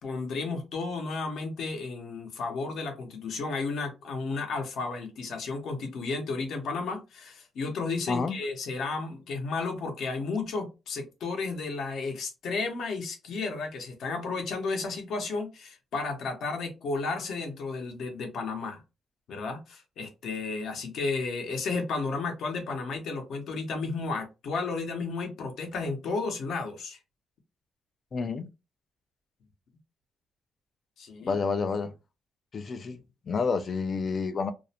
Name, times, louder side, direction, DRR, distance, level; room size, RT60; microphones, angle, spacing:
voice 1, 0.0-18.8 19.3-27.0 31.0-31.4, left 4 dB, 60° left, 0.7 m, -33 dB
voice 2, 28.1-28.5 31.3-31.9 32.5-33.0 33.3-34.5, left 4 dB, 35° left, 0.3 m, -29 dB
2.5 x 2.0 x 2.7 m
cardioid pair, 150°, 0 cm